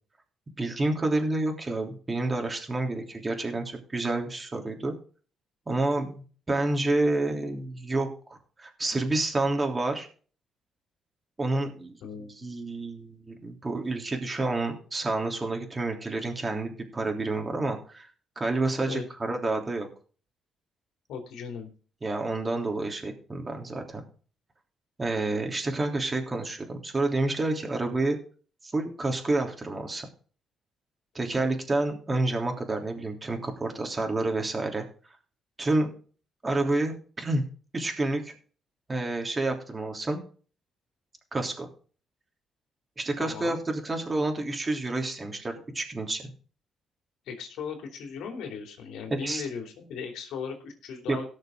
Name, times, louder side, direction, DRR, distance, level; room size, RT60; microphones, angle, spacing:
voice 1, 0.6-4.9 5.7-10.1 11.4-12.0 12.4-18.1 18.3-19.9 22.0-24.0 25.0-28.2 28.6-30.1 31.1-34.8 35.6-35.9 36.4-37.4 37.7-38.3 38.9-40.2 41.3-41.7 43.0-46.2 49.1-49.4 51.1-51.2, right 2 dB, 25° right, 3 dB, 3.2 m, -29 dB
voice 2, 12.0-12.4 18.8-19.1 21.1-21.7 43.2-43.5 47.3-51.3, left 6 dB, 85° left, 4 dB, 3.0 m, -37 dB
18.0 x 6.6 x 3.8 m, 0.40 s
cardioid pair, 90°, 0 cm